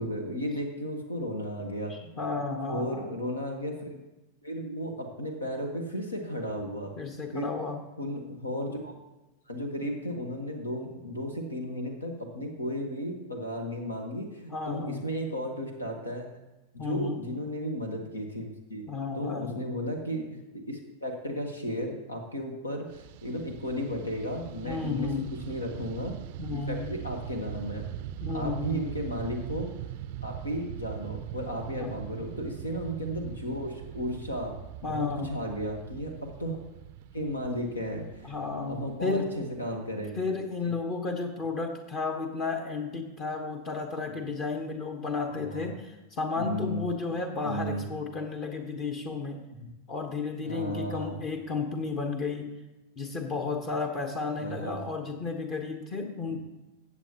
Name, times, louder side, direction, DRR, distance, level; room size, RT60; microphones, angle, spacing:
voice 1, 0.0-2.1 2.7-4.0 4.4-6.9 7.3-7.5 8.0-9.0 9.5-16.3 16.7-18.9 19.1-20.4 20.7-25.1 25.5-26.1 26.5-27.9 28.3-29.7 30.2-36.6 37.1-38.3 38.7-40.3 40.6-40.7 44.1-44.2 45.3-45.7 46.3-46.8 47.4-47.9 49.6-49.7 50.4-51.2 54.4-54.8 56.3-56.4, equal, 80° left, 4 dB, 1.4 m, -34 dB
voice 2, 1.9-3.1 7.0-7.8 14.5-15.0 16.8-17.3 18.9-19.5 24.6-25.3 26.4-26.9 28.2-28.9 31.8-31.9 34.8-35.3 38.2-39.3 40.2-49.4 49.9-52.5 53.0-56.4, left 4 dB, 35° left, 5 dB, 1.2 m, -33 dB
Fixed-wing aircraft airplane, 22.9-40.3, right 11 dB, 45° right, 0.4 m, -41 dB
14.5 x 8.3 x 2.9 m, 1.0 s
figure-of-eight pair, 90°, 0 cm